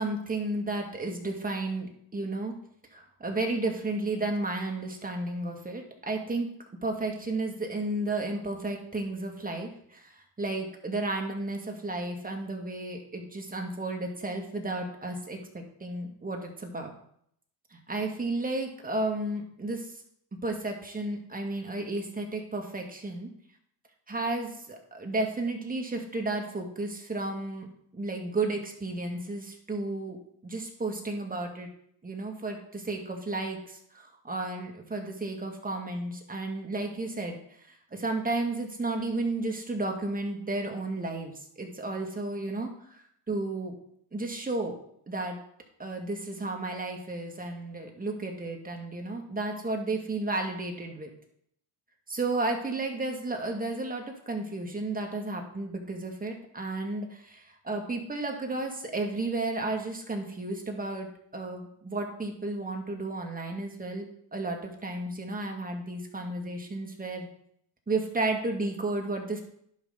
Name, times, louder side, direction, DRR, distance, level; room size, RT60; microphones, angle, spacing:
voice 1, 0.0-2.5 2.9-6.5 6.8-16.9 17.7-19.9 20.4-23.3 24.1-27.7 27.9-30.2 30.4-31.7 32.0-37.4 37.7-43.7 44.1-44.8 45.1-45.4 45.8-51.1 52.1-61.1 61.3-64.0 64.3-67.3 67.9-69.4, right 2 dB, 20° right, 2 dB, 2.2 m, -33 dB
11.0 x 5.3 x 4.0 m, 0.68 s
supercardioid pair, 75°, 45 cm